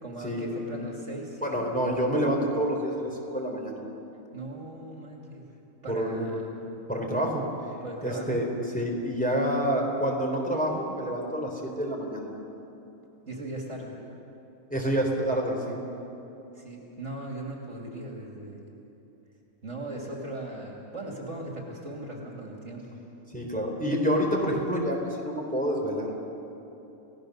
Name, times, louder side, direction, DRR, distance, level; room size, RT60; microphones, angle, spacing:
voice 1, 0.0-1.6 4.3-5.5 5.8-6.5 7.8-8.4 13.3-13.9 16.5-18.7 19.6-23.0, right 1 dB, 50° right, -1 dB, 3.0 m, -38 dB
voice 2, 1.4-3.8 5.9-6.3 6.9-7.4 8.0-8.5 8.7-12.3 14.7-15.8 23.3-26.1, equal, 5° left, -1 dB, 3.8 m, -28 dB
29.5 x 18.0 x 6.7 m, 3.0 s
omnidirectional pair, 1.6 m